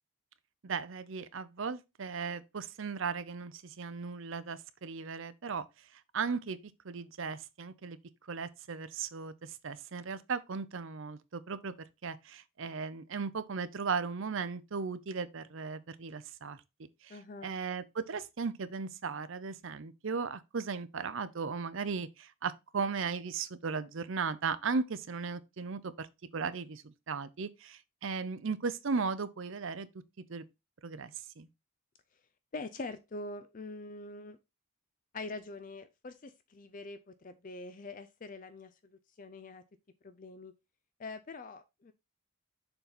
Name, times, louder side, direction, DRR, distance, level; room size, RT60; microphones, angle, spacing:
voice 1, 0.6-5.7 6.1-6.6 6.8-8.0 8.3-11.7 12.0-16.6 17.0-17.2 17.4-26.1 26.3-29.9 30.3-30.4 30.8-31.5, right 5 dB, 60° right, 0.6 m, -36 dB
voice 2, 17.1-17.6 32.5-34.4 35.1-39.6 40.0-40.5 41.0-41.9, left 3 dB, 35° left, 0.4 m, -44 dB
6.8 x 4.0 x 4.1 m
head